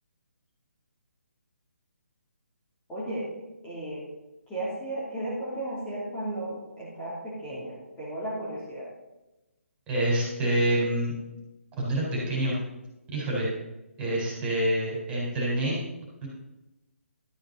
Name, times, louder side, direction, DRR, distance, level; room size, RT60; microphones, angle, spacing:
voice 1, 2.9-3.3 3.6-4.0 4.5-8.9, right 1 dB, 10° left, -9 dB, 3.2 m, -34 dB
voice 2, 9.9-11.1 11.8-12.5 13.1-13.5 14.0-15.8 16.2-16.3, right 1 dB, 15° right, -5 dB, 4.5 m, -26 dB
12.5 x 9.1 x 4.1 m, 1.0 s
figure-of-eight pair, 150°, 8 cm